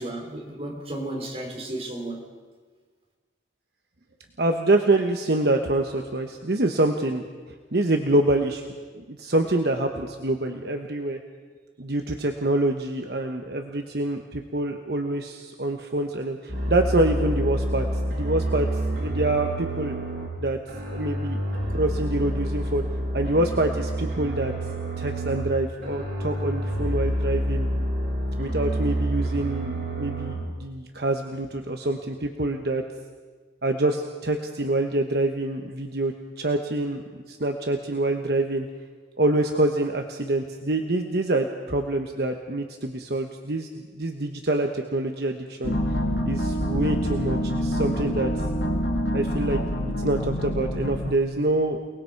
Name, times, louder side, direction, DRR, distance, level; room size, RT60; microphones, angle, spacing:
voice 1, 0.0-2.2, right 1 dB, 35° right, 0 dB, 3.4 m, -33 dB
voice 2, 4.4-7.3 7.7-8.6 8.9-11.2 11.8-17.9 18.1-18.7 19.0-20.0 20.4-20.6 20.9-21.4 21.7-22.8 23.1-24.5 25.0-27.7 28.4-32.8 33.6-37.0 37.3-38.7 39.2-45.8 46.3-48.3 49.1-49.6 49.8-51.8, right 2 dB, 60° right, 4 dB, 1.1 m, -26 dB
sound 1, 16.5-20.3 20.7-25.5 25.8-30.3, right 1 dB, 80° right, 7.2 m, -28 dB
sound 2, 45.6-51.1, equal, 75° left, 2.3 m, -26 dB
29.0 x 19.5 x 4.6 m, 1.5 s
head